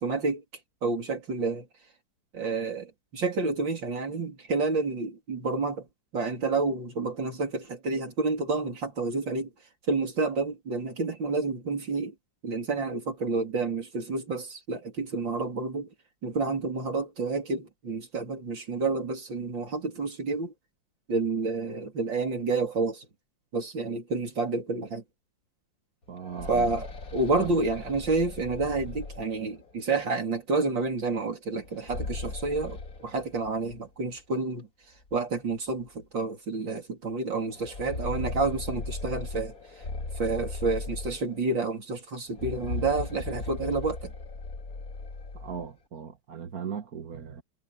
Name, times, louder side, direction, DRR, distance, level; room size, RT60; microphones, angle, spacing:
voice 1, 0.0-0.4 0.8-1.7 2.3-5.9 6.1-9.5 9.9-12.1 12.4-15.9 16.2-20.5 21.1-23.1 23.5-25.0 26.5-26.9 27.1-34.7 35.1-39.5 40.2-44.1, right 3 dB, 70° right, 4.3 m, -29 dB
sound 1, 26.0-29.8 31.6-33.8 34.1-34.2 35.1-35.2 35.7-35.8 37.4-41.6 42.3-45.7, left 3 dB, 45° left, 2.6 m, -38 dB
voice 2, 26.1-26.7 27.3-27.5 45.3-47.4, right 7 dB, 50° right, 1.7 m, -38 dB
omnidirectional pair, 2.1 m